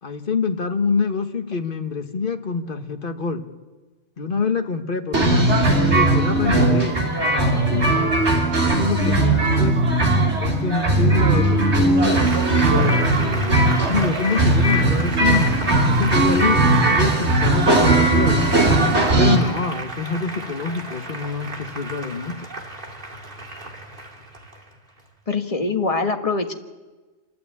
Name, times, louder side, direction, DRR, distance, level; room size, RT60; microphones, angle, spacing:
voice 1, 0.0-3.4 4.2-8.2 8.6-9.8 10.4-12.3 12.6-18.4 19.2-22.5, left 4 dB, 45° left, 6 dB, 1.5 m, -26 dB
sound 1, 5.1-19.4, right 2 dB, 60° right, 3.3 m, -18 dB
Applause, 12.1-25.1, right 2 dB, 45° right, 2.5 m, -34 dB
voice 2, 25.3-26.5, left 3 dB, 30° left, 4 dB, 1.4 m, -23 dB
27.0 x 12.0 x 8.4 m, 1.3 s
omnidirectional pair, 1.3 m